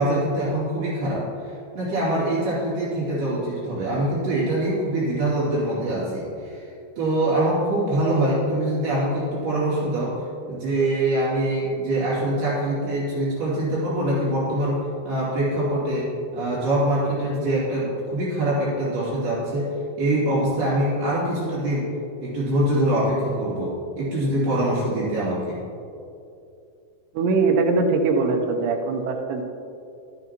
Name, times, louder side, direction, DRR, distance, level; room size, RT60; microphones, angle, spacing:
voice 1, 0.0-6.7 7.0-10.2 10.5-21.9 22.2-25.6, right 1 dB, 65° right, -9 dB, 4.5 m, -24 dB
voice 2, 27.1-29.4, right 4 dB, 80° right, 4 dB, 2.8 m, -21 dB
12.0 x 9.9 x 3.0 m, 2.6 s
omnidirectional pair, 4.9 m